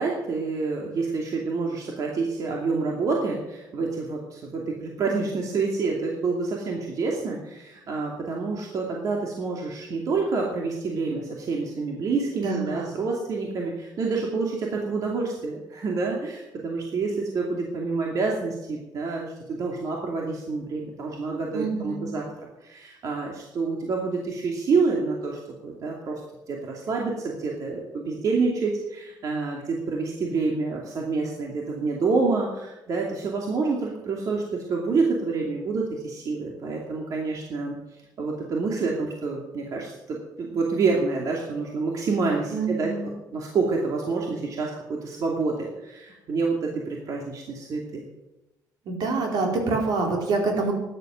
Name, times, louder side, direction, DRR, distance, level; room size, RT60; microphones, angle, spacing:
voice 1, 0.0-22.3 22.6-26.2 26.5-37.8 38.2-48.1, right 4 dB, 55° right, -1 dB, 2.6 m, -28 dB
voice 2, 12.4-12.9 21.5-22.1 42.5-43.1 48.9-50.7, right 3 dB, 75° right, 1 dB, 4.2 m, -26 dB
13.5 x 11.0 x 7.7 m, 0.99 s
cardioid pair, 130°, 7 cm